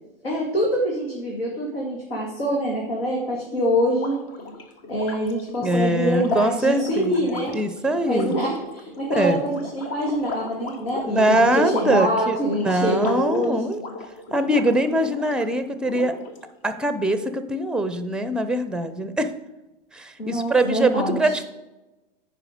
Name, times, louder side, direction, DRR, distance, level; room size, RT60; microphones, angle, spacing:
voice 1, 0.2-4.2 4.9-7.5 8.0-13.6 20.2-21.4, equal, 80° left, -2 dB, 2.2 m, -25 dB
sound 1, 3.9-15.5 15.8-16.7, left 2 dB, 45° left, 1.4 m, -37 dB
voice 2, 5.6-8.3 9.2-9.4 11.1-13.8 14.3-16.2 16.6-19.3 19.9-21.4, right 1 dB, 5° right, 10 dB, 0.6 m, -23 dB
9.8 x 5.0 x 5.0 m, 1.0 s
hypercardioid pair, 100°, 29 cm